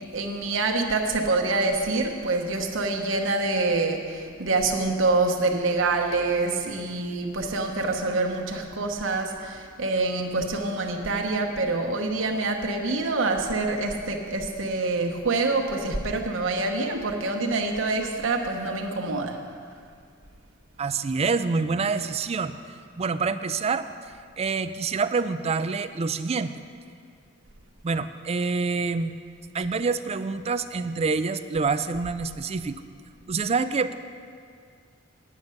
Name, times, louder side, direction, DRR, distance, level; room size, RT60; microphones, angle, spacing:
voice 1, 0.0-19.4, right 3 dB, 75° right, 2 dB, 1.1 m, -26 dB
voice 2, 20.8-22.6 23.0-23.9 24.4-26.6 27.8-29.2 29.5-32.8 33.3-34.0, right 4 dB, 30° right, 11 dB, 0.4 m, -26 dB
9.6 x 6.6 x 8.5 m, 2.2 s
head